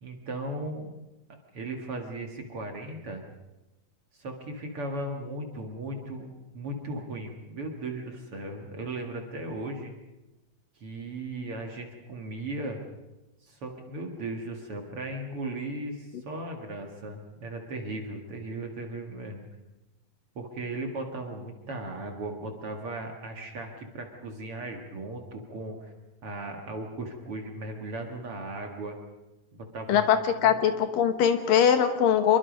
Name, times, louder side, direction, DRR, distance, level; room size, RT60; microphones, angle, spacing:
voice 1, 0.0-0.9 1.5-3.2 4.1-9.9 10.8-12.8 13.4-19.4 20.4-25.9 26.2-29.0 29.5-30.0 30.4-30.6, right 2 dB, 45° right, 3 dB, 2.4 m, -37 dB
voice 2, 29.9-32.4, left 8 dB, 70° left, 8 dB, 2.9 m, -22 dB
26.5 x 22.5 x 5.3 m, 1.0 s
omnidirectional pair, 4.2 m